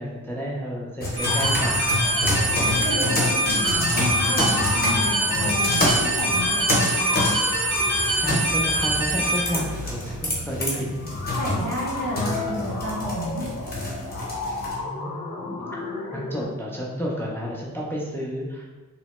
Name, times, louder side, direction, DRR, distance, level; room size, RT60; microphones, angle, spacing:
voice 1, 0.0-1.8 8.2-11.0 14.7-15.6 16.1-18.7, equal, 5° left, -4 dB, 0.3 m, -31 dB
sound 1, 1.0-14.8, left 1 dB, 30° left, 0.7 m, -28 dB
sound 2, 1.2-9.4, right 1 dB, 35° right, 0.7 m, -24 dB
sound 3, 1.3-16.4, left 3 dB, 75° left, 0.5 m, -34 dB
voice 2, 2.6-7.4 11.4-13.5, equal, 65° right, -4 dB, 0.9 m, -31 dB
2.9 x 2.1 x 2.9 m, 1.2 s
wide cardioid pair, 155°, 32 cm